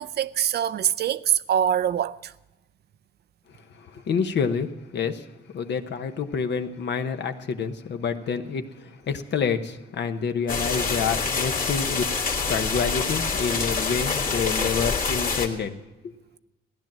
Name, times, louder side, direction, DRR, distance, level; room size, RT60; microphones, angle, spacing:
voice 1, 0.0-2.3, right 9 dB, 55° right, 0.5 m, -24 dB
voice 2, 3.8-5.3 5.5-12.1 12.5-15.8 16.0-16.1, left 6 dB, 60° left, 1.1 m, -28 dB
sound 1, 10.5-15.5, left 4 dB, 45° left, 2.2 m, -26 dB
15.5 x 10.5 x 7.5 m
cardioid pair, 90°, 20 cm